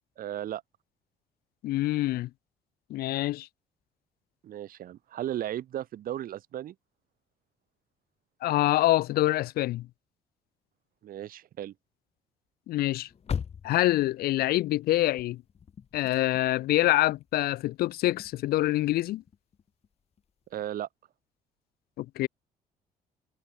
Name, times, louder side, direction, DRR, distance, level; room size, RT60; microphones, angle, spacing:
voice 1, 0.2-0.6 4.4-6.7 11.0-11.7 20.5-20.9, right 12 dB, 60° right, 2.5 m, -35 dB
voice 2, 1.6-2.3 2.9-3.5 8.4-9.9 12.7-13.1 13.6-15.4 15.9-19.2 22.0-22.3, left 16 dB, 75° left, 0.9 m, -26 dB
sound 1, 13.1-19.9 20.2-20.3 20.6-20.7, left 7 dB, 40° left, 1.9 m, -41 dB
cardioid pair, 95°, 16 cm